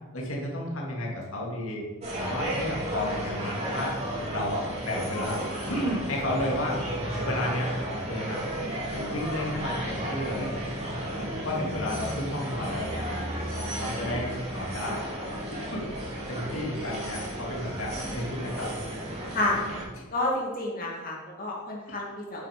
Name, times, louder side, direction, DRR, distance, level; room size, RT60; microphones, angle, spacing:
voice 1, 0.1-1.8 2.2-3.9 4.3-5.4 5.7-6.8 7.2-8.4 8.7-10.5 11.4-13.1 13.8-15.0 15.7-15.8 16.3-18.7 19.9-20.0 21.9-22.0, left 1 dB, 85° left, -2 dB, 2.2 m, -32 dB
sound 1, 2.0-19.8, right 1 dB, 30° right, 2.8 m, -33 dB
voice 2, 19.3-19.6 20.1-22.5, left 1 dB, 45° left, -3 dB, 2.2 m, -30 dB
9.4 x 6.9 x 5.0 m, 1.2 s
head